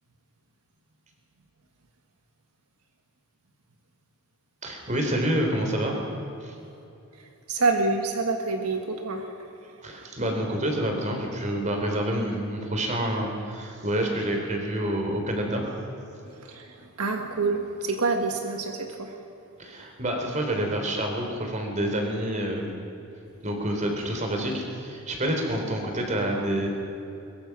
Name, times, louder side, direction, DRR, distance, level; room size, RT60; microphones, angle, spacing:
voice 1, 4.6-5.9 6.4-6.5 9.8-15.6 19.6-22.7 23.4-26.7, right 1 dB, 35° right, 2 dB, 3.7 m, -28 dB
voice 2, 7.5-9.3 16.4-19.1, right 3 dB, 80° right, 4 dB, 1.5 m, -27 dB
22.5 x 22.0 x 6.1 m, 2.8 s
head